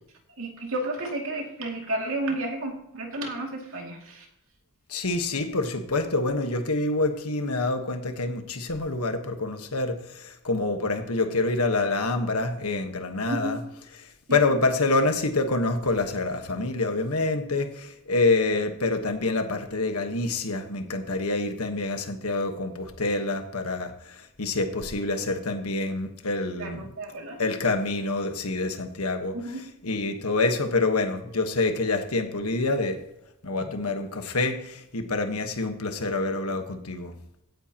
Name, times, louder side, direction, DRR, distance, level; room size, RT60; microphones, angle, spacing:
voice 1, 0.4-4.3 13.3-13.6 14.3-14.4 26.6-27.4 29.3-29.7, right 1 dB, 65° right, 2.6 m, -32 dB
voice 2, 4.9-13.6 14.3-26.9 27.4-29.4 29.8-33.0 33.4-37.1, left 3 dB, 85° left, 1.4 m, -27 dB
16.5 x 9.3 x 3.0 m
head